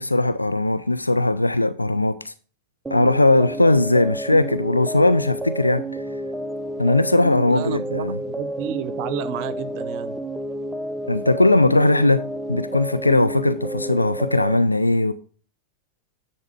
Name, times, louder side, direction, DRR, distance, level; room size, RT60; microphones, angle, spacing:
voice 1, 0.0-2.3 2.9-5.8 6.8-8.2 11.1-12.2 12.5-15.1, left 2 dB, 85° left, 0.4 m, -19 dB
sound 1, 2.9-14.6, right 1 dB, 5° right, 0.4 m, -30 dB
voice 2, 7.5-10.2, right 10 dB, 45° right, 0.7 m, -31 dB
9.7 x 4.4 x 4.9 m
figure-of-eight pair, 90°, 0 cm